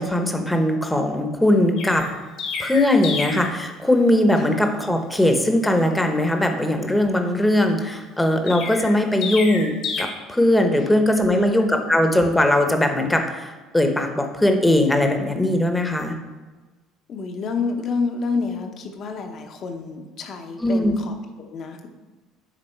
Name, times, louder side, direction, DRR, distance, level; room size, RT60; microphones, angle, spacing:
voice 1, 0.0-2.0 2.6-16.2 20.6-21.0, left 1 dB, 10° left, 5 dB, 1.0 m, -20 dB
Chirp tweet, 1.8-3.5 8.5-10.0, left 5 dB, 65° left, 1.7 m, -29 dB
voice 2, 17.1-21.9, left 4 dB, 50° left, 5 dB, 1.0 m, -28 dB
10.0 x 3.6 x 4.5 m, 1.3 s
supercardioid pair, 100°, 0 cm